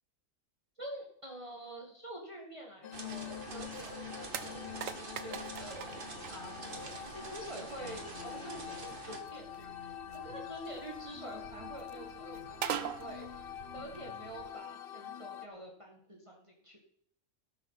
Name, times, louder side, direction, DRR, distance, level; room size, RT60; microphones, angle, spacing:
voice 1, 0.8-6.0 6.3-13.4 13.7-16.8, right 1 dB, 25° right, 0 dB, 1.9 m, -47 dB
sound 1, 2.8-15.5, left 10 dB, 55° left, 0.8 m, -46 dB
sound 2, 2.9-9.2, right 4 dB, 45° right, 1.5 m, -46 dB
sound 3, 3.4-14.5, right 8 dB, 85° right, 1.3 m, -45 dB
17.0 x 6.5 x 5.8 m, 0.72 s
omnidirectional pair, 1.3 m